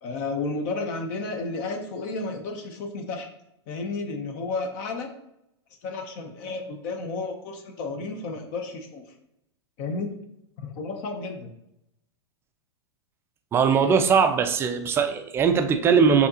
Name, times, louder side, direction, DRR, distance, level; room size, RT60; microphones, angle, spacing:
voice 1, 0.0-3.3 3.7-5.1 5.8-9.0 9.8-10.1 10.6-11.5, left 3 dB, 45° left, 5 dB, 0.7 m, -32 dB
voice 2, 13.5-16.3, right 6 dB, 15° right, 7 dB, 0.4 m, -20 dB
6.3 x 2.8 x 2.8 m, 0.81 s
hypercardioid pair, 130°, 14 cm